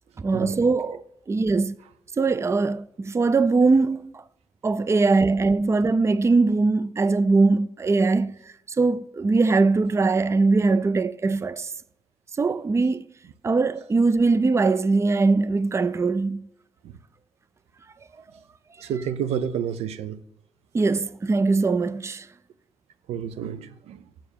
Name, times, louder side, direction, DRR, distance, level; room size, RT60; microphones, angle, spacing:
voice 1, 0.2-1.8 2.2-4.2 4.6-8.4 8.8-11.7 12.4-13.1 13.4-16.5 20.7-22.3, right 3 dB, 25° right, 0.4 m, -21 dB
voice 2, 18.8-20.2 23.1-24.0, right 8 dB, 80° right, 0.5 m, -29 dB
7.5 x 4.7 x 7.0 m
supercardioid pair, 55°, 11 cm